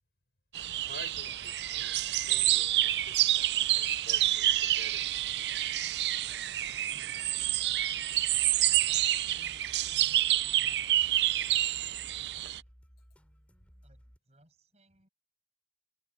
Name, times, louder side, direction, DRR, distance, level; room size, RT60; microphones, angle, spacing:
sound 1, 0.5-12.6, right 14 dB, 75° right, 0.5 m, -28 dB
voice 1, 0.9-5.1 10.6-10.7, left 2 dB, 70° left, 7.6 m, -51 dB
voice 2, 6.9-7.8 8.6-12.7 13.8-15.1, right 1 dB, 40° right, 7.7 m, -63 dB
sound 2, 7.4-14.2, equal, 5° left, 4.7 m, -58 dB
head